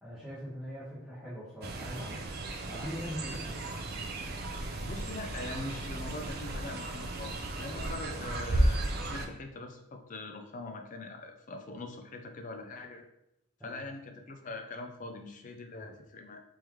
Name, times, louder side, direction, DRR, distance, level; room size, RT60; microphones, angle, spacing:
voice 1, 0.0-2.3 2.6-3.5 13.6-13.8, equal, ahead, -12 dB, 1.0 m, -41 dB
Fowl, 1.6-9.3, right 1 dB, 45° right, 0.4 m, -34 dB
voice 2, 4.8-8.8 9.1-13.0 13.6-16.4, left 2 dB, 35° left, 5 dB, 0.4 m, -42 dB
3.6 x 3.1 x 3.0 m, 0.82 s
head